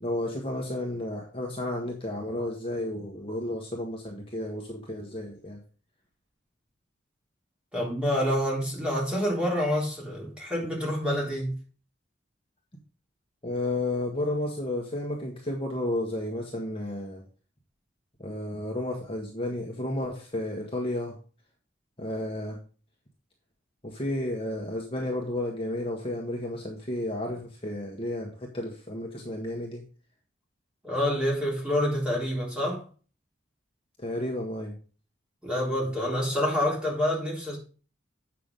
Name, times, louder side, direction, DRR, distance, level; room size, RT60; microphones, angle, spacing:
voice 1, 0.0-5.6 13.4-17.2 18.2-21.2 22.0-22.6 23.8-29.8 34.0-34.8, left 1 dB, 30° left, 1.6 m, -32 dB
voice 2, 7.7-11.6 30.8-32.8 35.4-37.6, equal, 5° right, 3.7 m, -27 dB
8.3 x 6.0 x 5.3 m
head